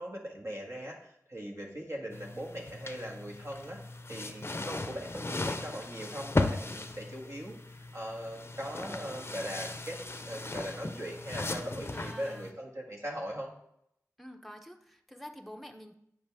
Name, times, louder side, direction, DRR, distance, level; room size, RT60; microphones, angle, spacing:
voice 1, 0.0-3.8 4.1-13.5, equal, 55° right, -1 dB, 1.6 m, -40 dB
sound 1, 2.1-12.5, left 2 dB, 40° left, 0.6 m, -37 dB
voice 2, 4.9-5.3 11.9-12.6 14.2-15.9, equal, ahead, 5 dB, 0.8 m, -48 dB
8.3 x 5.3 x 3.5 m, 0.76 s
wide cardioid pair, 50°, 6 cm